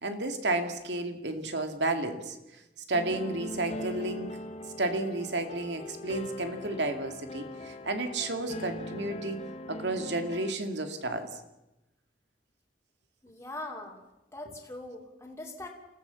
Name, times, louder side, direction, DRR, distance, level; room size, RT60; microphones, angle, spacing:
voice 1, 0.0-2.4 2.9-4.4 4.8-9.4 9.7-11.4, right 2 dB, 85° right, 6 dB, 2.5 m, -32 dB
sound 1, 2.9-10.5, left 1 dB, 35° left, 1.3 m, -41 dB
voice 2, 13.2-14.0 14.3-15.7, left 2 dB, 15° left, -1 dB, 2.9 m, -41 dB
28.0 x 15.5 x 7.1 m, 0.95 s
head